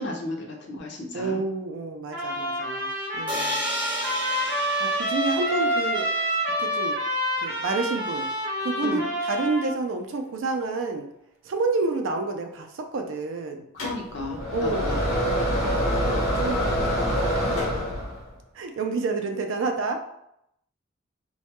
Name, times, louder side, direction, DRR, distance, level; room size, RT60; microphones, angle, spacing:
voice 1, 0.0-1.4 8.8-9.1 13.7-14.9, left 2 dB, 55° left, 0 dB, 0.5 m, -34 dB
voice 2, 1.1-3.6 4.8-6.1 6.6-7.0 7.4-8.3 8.6-9.0 9.3-11.1 11.4-13.6 14.5-15.0 15.6-17.9 18.6-20.1, right 3 dB, 70° right, 4 dB, 0.4 m, -29 dB
Trumpet, 2.1-9.7, equal, 50° right, 0.7 m, -28 dB
sound 1, 3.3-7.1, equal, 5° right, 0.5 m, -34 dB
sound 2, 13.8-18.3, equal, 85° left, 0.8 m, -25 dB
2.2 x 2.1 x 2.8 m, 0.77 s
head